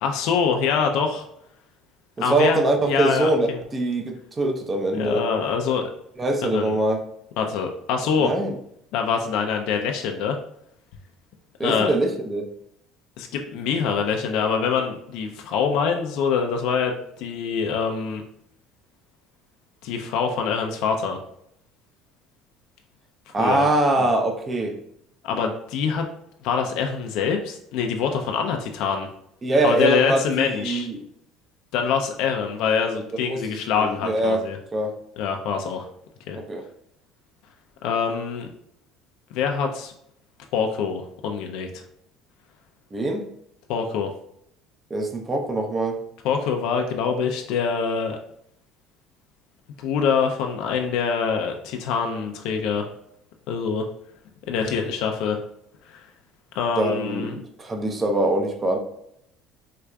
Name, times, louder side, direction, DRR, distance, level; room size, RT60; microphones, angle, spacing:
voice 1, 0.0-1.3 2.2-3.6 5.0-5.9 6.4-6.8 7.4-8.3 8.9-10.4 11.6-11.9 13.2-18.2 19.8-21.2 23.4-23.7 24.0-24.1 25.2-26.1 26.4-29.1 29.6-30.9 31.7-34.6 35.2-35.9 36.3-36.4 37.8-38.5 39.3-39.9 40.5-41.8 43.7-44.1 46.2-48.2 49.8-52.9 53.5-53.9 54.5-55.4 55.9-56.1 56.5-57.4, left 6 dB, 75° left, 3 dB, 0.4 m, -25 dB
voice 2, 2.2-3.5 3.7-5.2 6.2-7.0 8.2-8.5 11.6-12.5 23.3-24.8 29.4-31.0 33.3-33.4 33.8-34.4 34.7-34.9 36.3-36.6 42.9-43.2 44.9-46.0 56.8-58.8, right 2 dB, 25° right, 4 dB, 0.6 m, -23 dB
4.5 x 2.4 x 2.2 m, 0.73 s
supercardioid pair, 105°, 0 cm